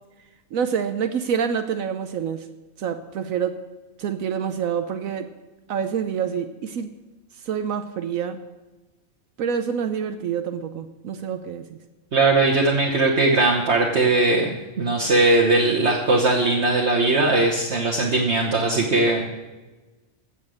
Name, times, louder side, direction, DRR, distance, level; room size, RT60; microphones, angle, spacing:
voice 1, 0.5-2.5 2.8-3.6 4.0-5.3 5.7-6.9 7.4-8.4 9.4-11.8, right 7 dB, 75° right, 8 dB, 1.1 m, -27 dB
voice 2, 12.1-19.3, right 2 dB, 50° right, -2 dB, 1.5 m, -19 dB
16.0 x 7.3 x 6.4 m, 1.2 s
omnidirectional pair, 1.5 m